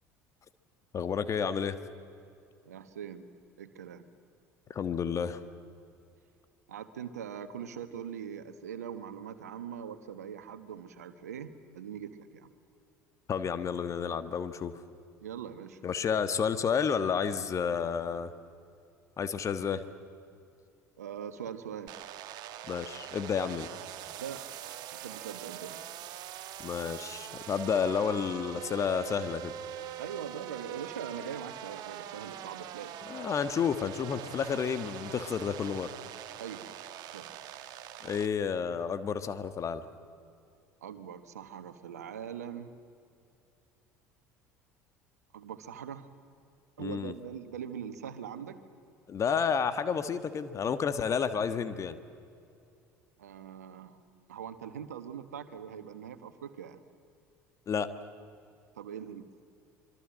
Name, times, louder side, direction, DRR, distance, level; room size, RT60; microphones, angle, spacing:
voice 1, 0.9-1.8 4.7-5.4 13.3-14.8 15.8-18.3 19.2-19.8 22.7-23.7 26.6-29.5 33.1-35.9 38.0-39.8 46.8-47.1 49.1-52.0 57.7-57.9, left 6 dB, 35° left, 11 dB, 1.5 m, -31 dB
voice 2, 2.6-3.3 3.6-4.1 6.7-12.5 15.2-15.8 21.0-21.9 24.2-24.4 24.9-25.8 30.0-33.0 36.4-36.8 37.1-37.3 40.8-42.7 45.3-46.1 46.8-48.6 53.2-54.0 54.3-56.8 58.7-59.3, right 8 dB, 80° right, 11 dB, 1.3 m, -42 dB
sound 1, 21.9-38.3, right 11 dB, 55° right, 1.3 m, -43 dB
25.5 x 23.5 x 7.6 m, 2.5 s
figure-of-eight pair, 60°, 9 cm